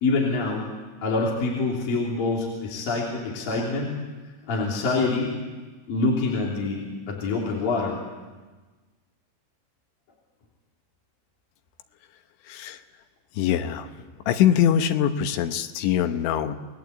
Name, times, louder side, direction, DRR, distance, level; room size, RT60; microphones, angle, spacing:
voice 1, 0.0-0.6 1.0-4.0 4.5-5.3 5.9-8.0, left 3 dB, 50° left, -3 dB, 4.8 m, -25 dB
voice 2, 12.5-12.8 13.3-13.9 14.3-16.6, left 9 dB, 75° left, 8 dB, 3.3 m, -23 dB
29.0 x 20.5 x 8.3 m, 1.3 s
omnidirectional pair, 5.6 m